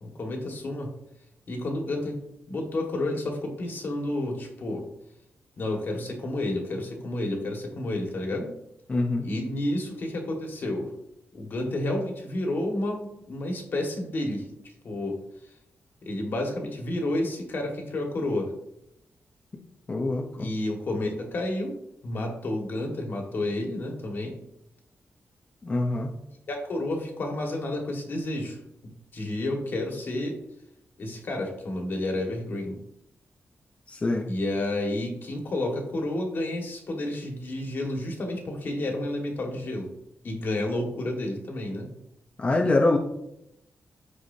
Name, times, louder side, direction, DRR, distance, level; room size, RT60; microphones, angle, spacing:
voice 1, 0.0-0.9 1.5-2.2 2.5-4.8 5.6-8.5 9.2-10.9 11.3-15.2 16.0-18.5 20.4-21.7 22.0-24.4 26.5-28.6 29.1-30.4 31.0-32.8 34.3-39.9 40.2-41.9, left 1 dB, 50° left, 1 dB, 1.7 m, -30 dB
voice 2, 8.9-9.3 19.9-20.5 25.6-26.1 33.9-34.3 42.4-43.0, left 2 dB, 25° left, 1 dB, 0.7 m, -24 dB
14.0 x 4.8 x 2.7 m, 0.80 s
wide cardioid pair, 180°, 5 cm